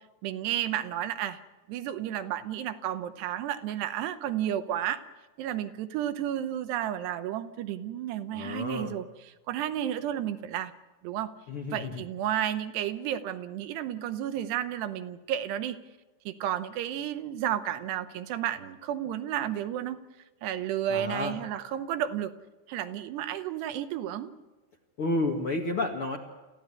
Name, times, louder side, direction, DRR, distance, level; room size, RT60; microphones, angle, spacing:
voice 1, 0.2-1.4 1.7-5.0 5.4-10.7 11.0-11.3 11.7-15.8 16.3-20.0 20.4-22.3 22.7-24.3, right 11 dB, 80° right, 10 dB, 3.1 m, -32 dB
voice 2, 8.3-9.0 11.5-12.0 20.9-21.4 25.0-26.2, left 2 dB, 50° left, 2 dB, 1.8 m, -31 dB
27.5 x 15.0 x 9.7 m, 1.2 s
omnidirectional pair, 4.8 m